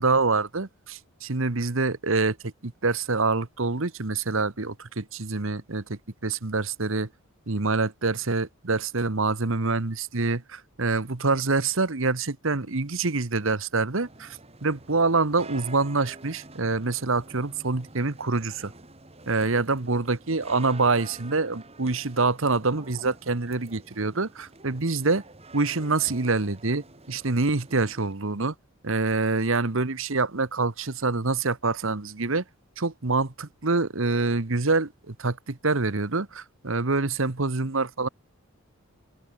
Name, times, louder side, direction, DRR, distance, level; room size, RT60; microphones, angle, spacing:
voice 1, 0.0-7.1 7.5-18.7 19.3-25.2 25.5-28.5 28.8-32.4 32.8-38.1, right 3 dB, 60° right, 1.3 m, -26 dB
sound 1, 14.0-28.1, right 3 dB, 30° right, 2.3 m, -48 dB
head